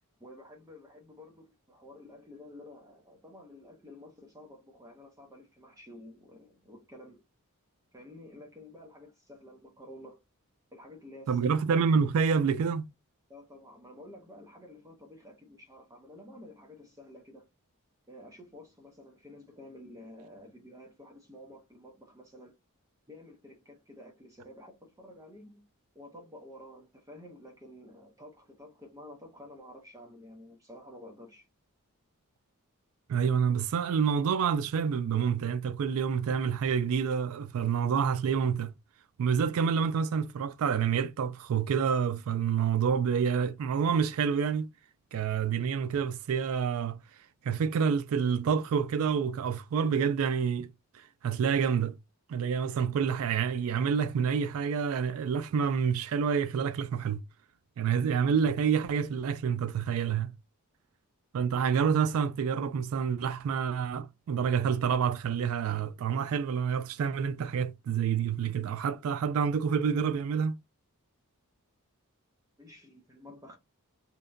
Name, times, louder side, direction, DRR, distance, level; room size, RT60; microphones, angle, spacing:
voice 1, 0.2-7.2 7.9-10.2 10.7-11.5 13.3-17.5 18.1-22.5 23.1-25.7 25.9-31.5 72.6-73.6, left 1 dB, 15° right, 0.5 m, -51 dB
voice 2, 11.3-12.8 33.1-38.7 39.2-44.7 45.1-47.0 47.4-50.7 51.2-52.0 52.3-57.2 57.8-60.3 61.3-70.6, right 6 dB, 65° right, 0.3 m, -28 dB
2.8 x 2.1 x 2.4 m
head